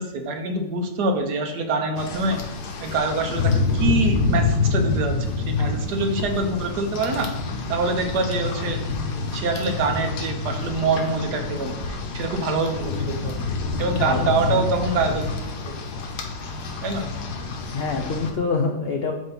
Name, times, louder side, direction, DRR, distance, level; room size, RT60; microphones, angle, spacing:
voice 1, 0.0-2.4 2.8-7.3 7.7-13.4 13.8-15.3 16.8-17.1, right 3 dB, 70° right, 5 dB, 1.4 m, -25 dB
Rain, 2.0-18.3, left 4 dB, 70° left, 1.4 m, -27 dB
voice 2, 14.0-14.7 17.7-19.1, left 4 dB, 85° left, 2 dB, 0.5 m, -26 dB
7.8 x 2.8 x 5.7 m, 0.94 s
omnidirectional pair, 1.9 m